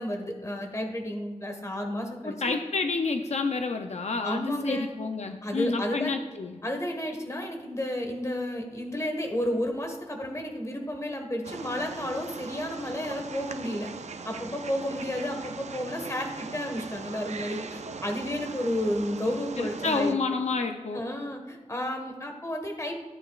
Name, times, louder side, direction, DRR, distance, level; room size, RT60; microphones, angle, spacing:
voice 1, 0.0-2.5 4.2-4.9 5.4-6.1 6.6-13.9 14.2-20.2 20.9-22.9, left 1 dB, 25° left, 3 dB, 1.5 m, -32 dB
voice 2, 2.2-6.6 19.6-21.0, left 4 dB, 75° left, 5 dB, 0.6 m, -29 dB
Wild animals, 11.4-20.1, right 5 dB, 80° right, 0.5 m, -40 dB
14.0 x 8.8 x 2.4 m, 1.4 s
wide cardioid pair, 90°, 12 cm